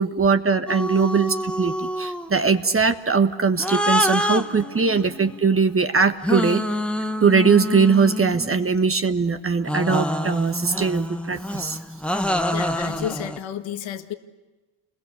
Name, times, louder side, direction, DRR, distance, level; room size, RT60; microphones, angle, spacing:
voice 1, 0.0-6.6 7.2-11.8, right 5 dB, 30° right, 1.3 m, -21 dB
sound 1, 0.7-2.4 3.6-5.4 6.2-8.8 9.7-13.4, equal, ahead, 1.3 m, -27 dB
voice 2, 12.5-14.1, left 10 dB, 70° left, 1.8 m, -31 dB
29.0 x 21.5 x 8.4 m
cardioid pair, 90°, 48 cm